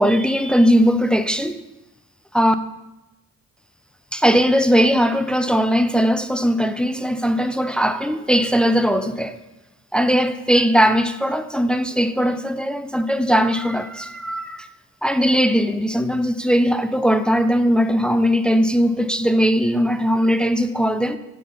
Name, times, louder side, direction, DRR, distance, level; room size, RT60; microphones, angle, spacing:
voice 1, 0.0-1.6 2.3-2.6 4.1-9.4 9.9-14.7 15.0-21.2, equal, 5° left, 0.3 m, -19 dB
8.4 x 3.8 x 5.6 m
cardioid pair, 90°, 30 cm